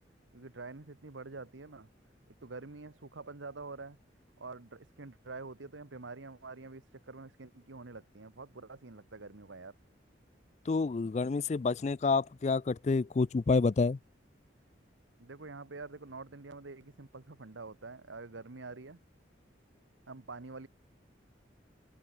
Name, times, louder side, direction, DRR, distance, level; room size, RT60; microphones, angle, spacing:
voice 1, 0.3-1.9 2.4-4.0 4.4-9.7 15.2-19.0 20.1-20.7, right 3 dB, 90° right, 1.2 m, -46 dB
voice 2, 10.7-14.0, left 4 dB, 35° left, 0.3 m, -28 dB
head